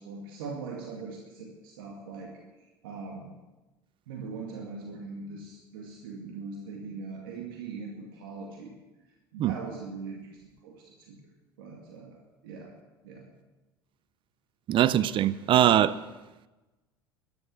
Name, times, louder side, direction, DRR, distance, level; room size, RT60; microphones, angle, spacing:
voice 1, 0.0-2.3 2.8-3.3 4.1-8.8 9.3-10.8 11.1-11.2 11.6-12.7 13.0-13.3, right 4 dB, 70° right, 2.2 m, -41 dB
voice 2, 14.7-15.9, right 11 dB, 45° right, 0.6 m, -22 dB
14.0 x 10.5 x 7.3 m
hypercardioid pair, 70°, 12 cm